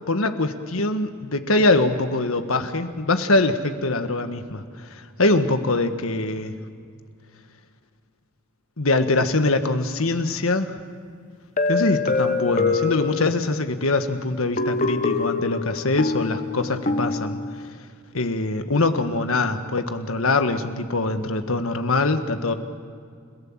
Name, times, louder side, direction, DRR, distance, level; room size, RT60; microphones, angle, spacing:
voice 1, 0.1-6.5 8.8-10.7 11.7-17.4 18.1-22.5, left 2 dB, 70° left, 8 dB, 1.5 m, -23 dB
sound 1, 11.6-13.8 14.6-17.7, left 4 dB, 35° left, 1.2 m, -25 dB
30.0 x 16.5 x 7.4 m, 2.2 s
head